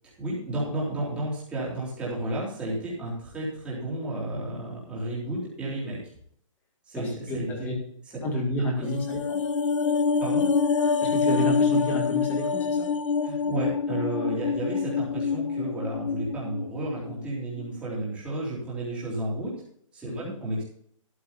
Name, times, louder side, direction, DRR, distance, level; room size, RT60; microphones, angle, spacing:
voice 1, 0.2-6.0 6.9-7.5 10.2-10.4 13.2-19.5 19.9-20.6, right 1 dB, 5° right, -6 dB, 3.6 m, -32 dB
voice 2, 7.0-7.7 8.2-9.4 11.1-12.9 20.1-20.3, left 1 dB, 10° left, 1 dB, 1.9 m, -30 dB
sound 1, 8.8-17.3 17.6-17.7, left 5 dB, 65° left, 0.8 m, -26 dB
13.5 x 11.5 x 2.7 m, 0.62 s
hypercardioid pair, 175°, 17 cm